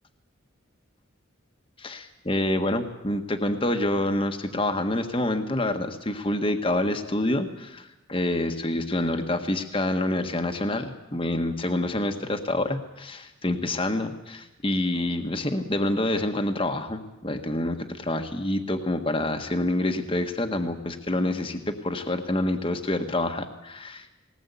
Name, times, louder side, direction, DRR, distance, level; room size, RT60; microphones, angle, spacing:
voice 1, 1.8-24.1, left 1 dB, 25° left, 6 dB, 1.5 m, -27 dB
20.5 x 19.0 x 8.4 m, 0.94 s
head